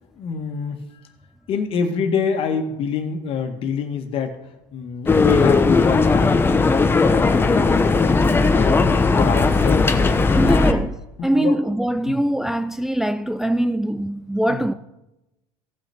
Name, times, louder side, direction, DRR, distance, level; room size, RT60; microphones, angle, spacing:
voice 1, 0.2-0.8 1.5-4.4 4.7-6.4 7.1-10.0 10.4-10.9 11.2-11.6 12.1-12.2 14.5-14.7, left 6 dB, 50° left, 1.7 m, -26 dB
sound 1, 5.1-10.7, left 4 dB, 20° left, 0.9 m, -17 dB
voice 2, 10.3-11.0 11.2-14.7, right 1 dB, 5° right, 0.4 m, -22 dB
16.5 x 6.0 x 4.4 m
supercardioid pair, 105°, 12 cm